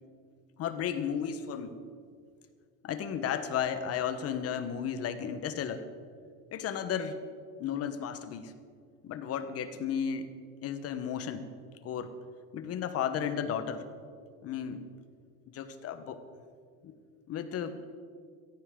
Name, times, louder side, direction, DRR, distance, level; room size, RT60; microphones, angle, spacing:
voice 1, 0.6-1.8 2.8-5.9 6.5-7.2 7.6-8.5 9.0-10.4 10.6-11.5 11.8-12.1 12.5-13.9 14.4-14.9 15.5-16.2 16.8-17.0 17.3-17.9, left 8 dB, 45° left, 10 dB, 1.2 m, -34 dB
16.5 x 14.5 x 3.8 m, 2.2 s
cardioid pair, 130°, 34 cm